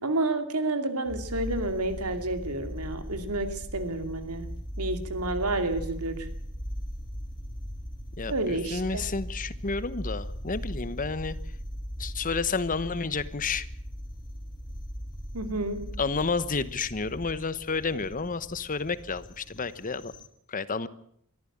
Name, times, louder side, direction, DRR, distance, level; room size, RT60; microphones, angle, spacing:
voice 1, 0.0-4.4 4.8-6.1 8.3-9.0 15.3-16.0, right 2 dB, 90° right, 8 dB, 2.7 m, -30 dB
sound 1, 1.0-20.3, equal, 20° left, 2.2 m, -39 dB
voice 2, 8.2-11.4 12.0-13.7 16.0-20.1 20.5-20.9, left 4 dB, 40° left, 15 dB, 1.0 m, -30 dB
23.0 x 14.5 x 8.7 m, 0.68 s
head